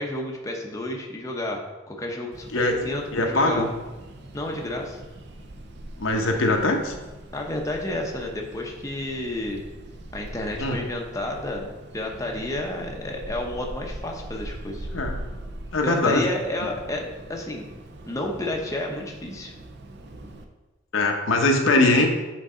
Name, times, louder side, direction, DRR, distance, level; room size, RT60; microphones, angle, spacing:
voice 1, 0.0-1.6 1.9-3.7 4.3-5.0 7.3-9.6 10.1-14.9 15.8-17.7 18.1-19.5, left 1 dB, 15° left, 0 dB, 0.7 m, -31 dB
sound 1, 2.3-20.4, right 1 dB, 55° right, 0.6 m, -41 dB
voice 2, 3.1-3.7 6.0-6.9 10.6-10.8 14.9-15.1 15.7-16.3 20.9-22.1, left 2 dB, 75° left, 2 dB, 0.8 m, -21 dB
7.7 x 3.9 x 3.8 m, 1.1 s
head